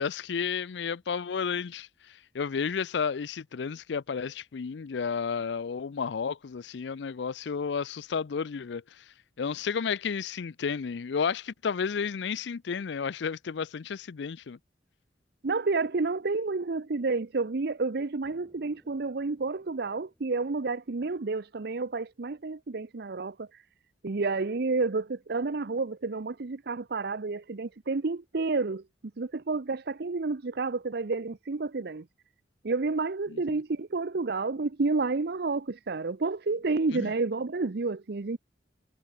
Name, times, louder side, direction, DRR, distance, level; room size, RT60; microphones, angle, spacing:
voice 1, 0.0-9.0 9.4-14.6 33.3-33.4 36.9-37.1, left 6 dB, 70° left, 0.5 m, -32 dB
voice 2, 15.4-23.6 24.0-28.8 29.2-32.0 32.6-38.4, right 3 dB, 60° right, 0.7 m, -30 dB
sound 1, 18.2-22.1, equal, 5° right, 5.0 m, -66 dB
head